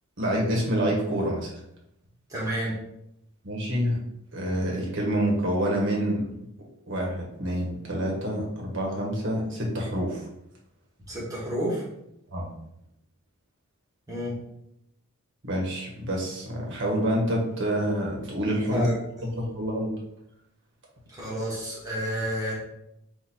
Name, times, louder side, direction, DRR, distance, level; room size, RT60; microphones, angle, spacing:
voice 1, 0.2-1.6 3.4-4.0 4.3-6.3 6.9-10.3 12.3-12.5 15.4-18.9 19.4-19.9, equal, 55° right, -2 dB, 1.2 m, -27 dB
voice 2, 2.3-2.7 11.1-11.8 14.1-14.3 18.7-18.9 21.1-22.5, equal, 15° right, -6 dB, 1.5 m, -30 dB
4.3 x 2.7 x 4.1 m, 0.81 s
head